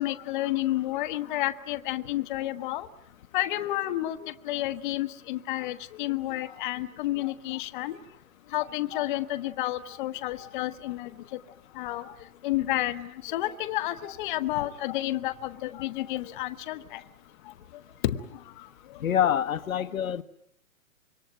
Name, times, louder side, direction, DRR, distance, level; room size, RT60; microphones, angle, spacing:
voice 1, 0.0-2.9 3.3-8.0 8.5-11.1 11.8-12.0 12.4-17.0 18.0-18.2, left 15 dB, 35° left, 9 dB, 1.1 m, -30 dB
voice 2, 19.0-20.2, left 9 dB, 75° left, 9 dB, 1.3 m, -26 dB
26.0 x 23.5 x 9.2 m, 0.75 s
hypercardioid pair, 145°, 42 cm